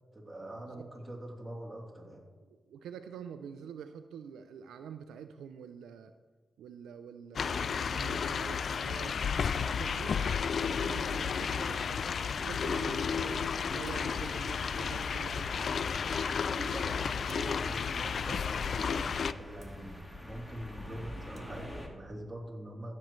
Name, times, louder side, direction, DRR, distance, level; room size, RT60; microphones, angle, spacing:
voice 1, 0.1-2.2 16.5-22.9, right 1 dB, 15° right, -3 dB, 3.1 m, -44 dB
voice 2, 2.7-6.1 6.6-12.0 12.4-15.9, right 7 dB, 90° right, 9 dB, 0.4 m, -46 dB
sound 1, 7.3-19.3, left 6 dB, 65° left, 0.3 m, -32 dB
sound 2, 8.6-9.1 11.8-11.9 12.2-12.4 13.8-14.4 17.3-17.7 19.6-19.8 21.1-21.9, right 2 dB, 55° right, 1.3 m, -58 dB
sound 3, 12.6-21.9, left 1 dB, 20° left, 1.9 m, -46 dB
15.5 x 7.6 x 3.1 m, 1.3 s
supercardioid pair, 50°, 0 cm